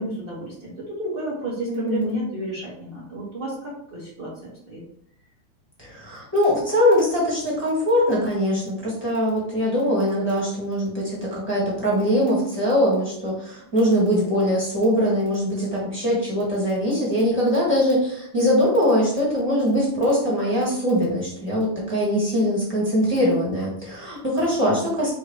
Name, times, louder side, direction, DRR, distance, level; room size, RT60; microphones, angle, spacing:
voice 1, 0.0-4.8, right 1 dB, 40° right, -7 dB, 0.8 m, -32 dB
voice 2, 1.7-2.2 5.8-25.1, equal, 5° left, -7 dB, 1.4 m, -22 dB
3.7 x 2.8 x 4.6 m, 0.66 s
omnidirectional pair, 2.4 m